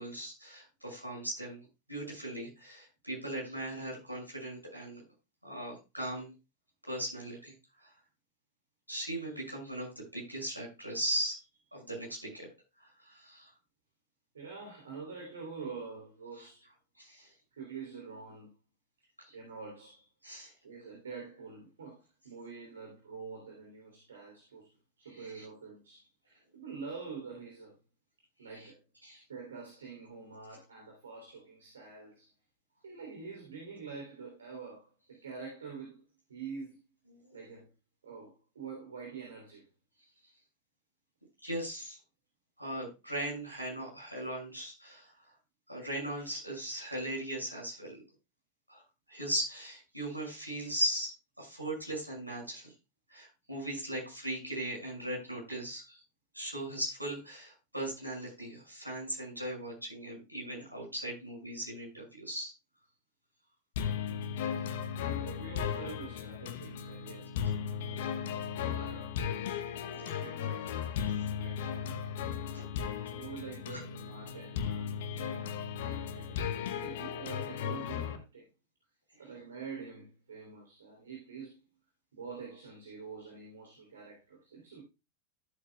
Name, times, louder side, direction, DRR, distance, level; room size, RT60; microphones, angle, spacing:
voice 1, 0.0-5.0 5.4-6.3 6.8-7.5 7.8-7.9 8.9-11.4 11.7-12.5 12.8-13.5 16.4-16.5 17.0-17.3 19.2-19.3 20.2-20.5 25.3-25.4 29.0-29.2 37.3-37.4 41.4-42.0 42.6-45.1 45.7-48.0 48.7-48.8 49.1-52.7 53.1-56.0 56.3-62.5 72.5-72.6, right 1 dB, 90° right, 6.2 m, -38 dB
voice 2, 14.3-16.6 17.5-18.5 19.3-20.1 20.6-24.7 25.0-27.8 28.4-28.8 29.3-32.3 32.8-36.8 37.3-37.7 38.0-39.7 64.6-64.7 65.2-67.3 67.8-69.2 69.9-70.9 71.3-72.0 73.1-76.4 76.7-78.5 79.2-81.6 82.1-84.8, right 5 dB, 70° right, 3.2 m, -46 dB
sound 1, 63.8-78.2, left 8 dB, 55° left, 0.9 m, -36 dB
13.5 x 8.3 x 2.3 m
figure-of-eight pair, 90°, 0 cm